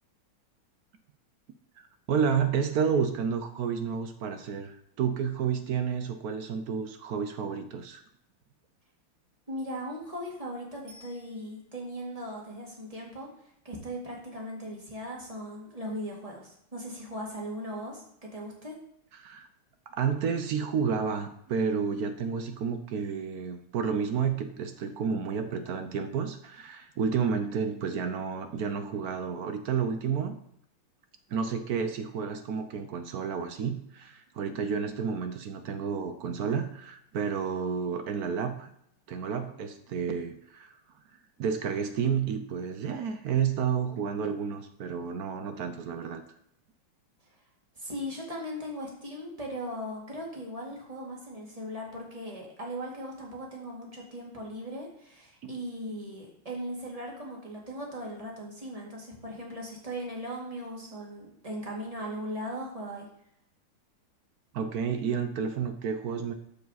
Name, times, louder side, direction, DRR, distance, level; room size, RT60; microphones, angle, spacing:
voice 1, 2.1-8.0 19.2-19.5 19.9-30.4 31.3-38.7 39.1-40.7 41.4-46.2 55.4-55.5 64.5-66.3, right 6 dB, 70° right, 8 dB, 0.9 m, -30 dB
voice 2, 9.5-13.3 13.6-18.8 47.8-63.1, equal, 15° right, -2 dB, 2.0 m, -38 dB
Bicycle bell, 10.9-12.0 21.1-21.2, equal, 85° right, 3.3 m, -56 dB
13.5 x 4.7 x 4.1 m, 0.72 s
omnidirectional pair, 2.3 m